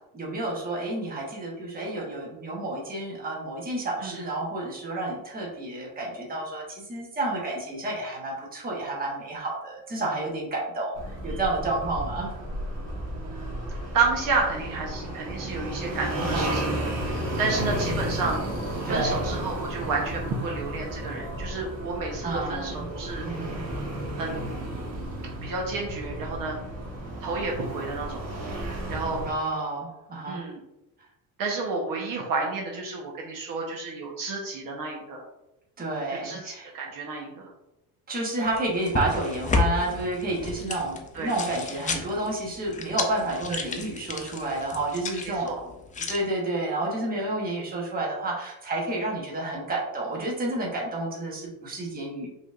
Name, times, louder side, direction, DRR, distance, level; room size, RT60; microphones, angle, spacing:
voice 1, 0.1-12.3 16.2-16.5 18.8-19.2 22.2-22.9 23.2-23.6 29.2-30.5 35.8-36.7 38.1-45.5 46.1-52.3, right 2 dB, 20° right, -3 dB, 1.1 m, -30 dB
sound 1, 11.0-29.3, right 1 dB, 40° right, 1.3 m, -33 dB
voice 2, 13.0-13.5 13.9-18.4 18.9-23.3 24.2-24.5 25.4-26.6 27.2-28.3 28.6-29.2 30.3-30.6 31.4-35.2 36.2-37.4 41.1-41.3 43.5-43.7 45.2-45.6, right 4 dB, 55° right, 0 dB, 1.0 m, -31 dB
sound 2, 38.5-46.2, left 4 dB, 20° left, 0.4 m, -32 dB
4.8 x 3.5 x 2.5 m, 0.92 s
cardioid pair, 135°, 39 cm